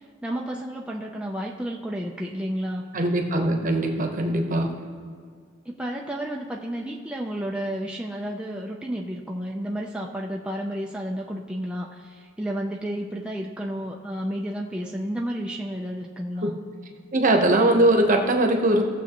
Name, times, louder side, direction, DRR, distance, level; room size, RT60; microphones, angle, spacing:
voice 1, 0.2-2.9 5.7-16.5 18.7-18.8, equal, 5° right, -2 dB, 0.5 m, -31 dB
voice 2, 2.9-4.7 16.4-16.5 17.1-18.8, right 1 dB, 40° right, 3 dB, 1.0 m, -21 dB
17.0 x 7.0 x 3.0 m, 2.1 s
head